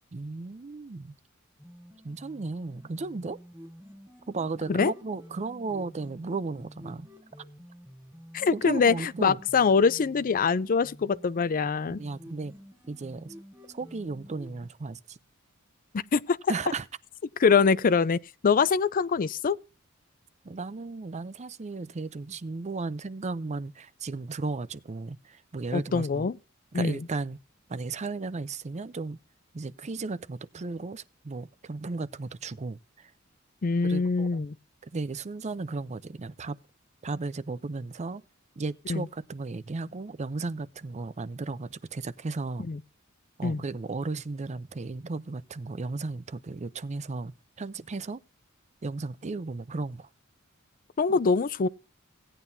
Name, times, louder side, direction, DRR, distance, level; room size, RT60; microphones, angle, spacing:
voice 1, 0.1-1.1 2.0-3.4 4.3-7.1 8.5-9.4 11.9-12.5 12.9-13.3 13.7-15.2 16.5-16.8 20.4-26.3 26.7-27.4 27.7-29.2 29.5-33.1 33.8-34.5 34.9-36.6 37.0-38.2 38.6-42.6 43.4-48.2 48.8-50.1 51.1-51.2, right 3 dB, 35° right, 0.5 m, -35 dB
sound 1, 1.6-14.7, equal, 10° right, 3.0 m, -50 dB
voice 2, 8.3-12.0 15.9-16.4 17.4-19.6 25.7-26.4 26.7-27.1 33.6-34.6 38.9-39.1 42.7-42.8 43.4-43.6 51.0-51.7, left 5 dB, 40° left, 0.4 m, -24 dB
17.0 x 9.0 x 2.7 m
head